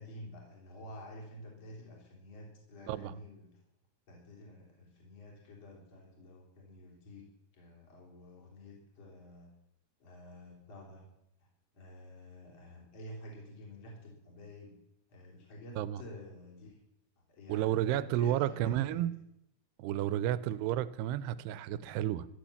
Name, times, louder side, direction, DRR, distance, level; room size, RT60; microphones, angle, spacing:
voice 1, 0.0-3.5 4.1-7.3 7.5-9.5 10.0-11.0 11.4-11.5 11.7-14.7 15.1-16.8 17.3-19.1 19.9-20.1, left 1 dB, 30° left, -2 dB, 4.2 m, -50 dB
voice 2, 17.5-19.1 19.8-22.3, right 12 dB, 85° right, 16 dB, 2.7 m, -31 dB
14.0 x 10.5 x 7.1 m, 0.83 s
omnidirectional pair, 4.7 m